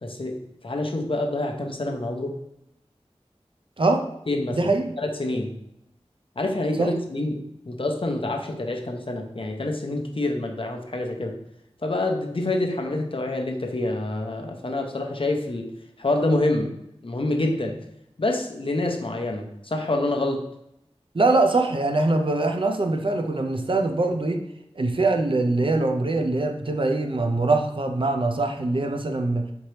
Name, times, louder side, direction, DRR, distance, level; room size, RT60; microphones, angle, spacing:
voice 1, 0.0-2.4 4.3-4.7 5.0-5.5 6.4-11.4 11.8-15.7 16.0-17.7 18.2-20.4, left 2 dB, 55° left, 2 dB, 0.6 m, -27 dB
voice 2, 4.5-4.9 6.8-6.9 21.1-24.4 24.8-29.4, right 2 dB, 50° right, 5 dB, 0.5 m, -23 dB
4.4 x 2.8 x 3.2 m, 0.82 s
wide cardioid pair, 40°, 11 cm